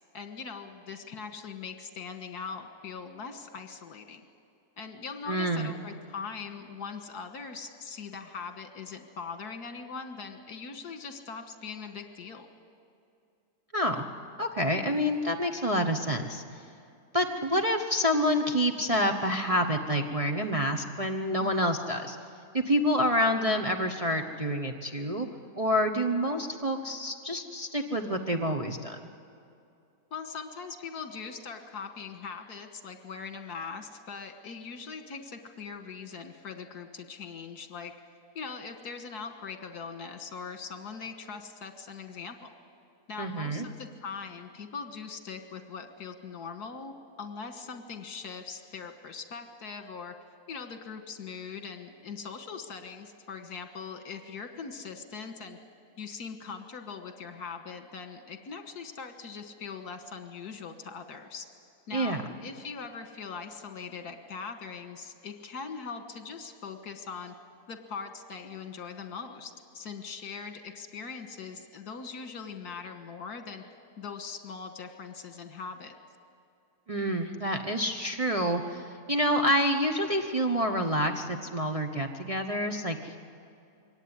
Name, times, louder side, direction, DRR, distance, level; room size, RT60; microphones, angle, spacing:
voice 1, 0.1-4.2 4.8-12.5 21.4-21.5 30.1-37.9 38.4-42.5 43.1-50.1 50.5-55.6 56.0-61.5 61.9-67.3 67.7-73.6 74.0-75.9, left 5 dB, 75° left, 8 dB, 2.0 m, -41 dB
voice 2, 5.3-5.7 13.7-14.0 14.4-16.4 17.1-22.2 22.5-25.3 25.6-29.0 43.2-43.6 61.9-62.2 76.9-83.2, equal, 25° right, 3 dB, 0.9 m, -28 dB
23.0 x 17.5 x 9.8 m, 2.5 s
omnidirectional pair, 1.7 m